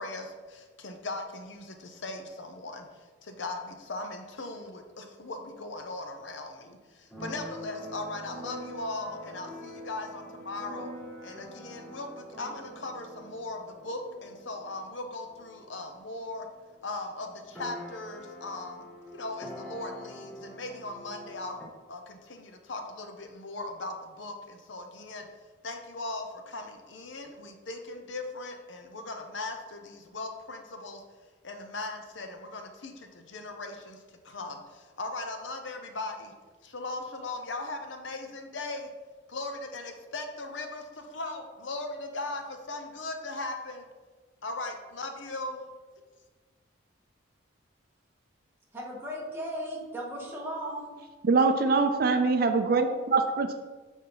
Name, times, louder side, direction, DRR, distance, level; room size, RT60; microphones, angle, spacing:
voice 1, 0.0-10.9 11.2-16.5 16.8-21.6 21.9-25.3 25.6-31.0 31.4-36.3 36.6-38.9 39.3-43.8 44.4-45.6, left 2 dB, 70° left, 5 dB, 0.8 m, -39 dB
Keyboard (musical), 7.1-16.7 16.9-17.0 17.2-21.7, equal, 5° left, 1.0 m, -45 dB
voice 2, 48.7-50.9, equal, 10° right, -4 dB, 1.6 m, -36 dB
voice 3, 51.2-53.5, right 4 dB, 50° right, 6 dB, 0.5 m, -23 dB
9.3 x 4.1 x 4.0 m, 1.4 s
head